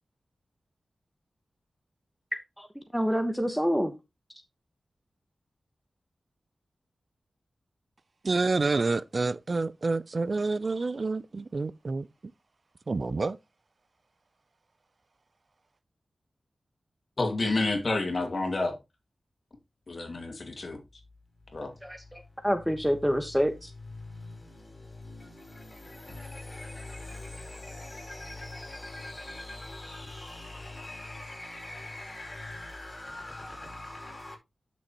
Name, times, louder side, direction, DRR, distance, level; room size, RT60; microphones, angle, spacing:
voice 1, 2.3-2.7 2.9-3.9 21.8-23.7, equal, 5° right, 1.2 m, -27 dB
voice 2, 8.2-12.1 12.9-13.4, right 3 dB, 55° right, 0.4 m, -28 dB
voice 3, 17.2-18.8 19.9-20.8 21.5-21.7, left 2 dB, 55° left, 2.2 m, -29 dB
voice 4, 21.7-22.5 23.1-34.4, left 2 dB, 25° left, 5.1 m, -43 dB
11.5 x 6.3 x 2.9 m
cardioid pair, 55°, 0 cm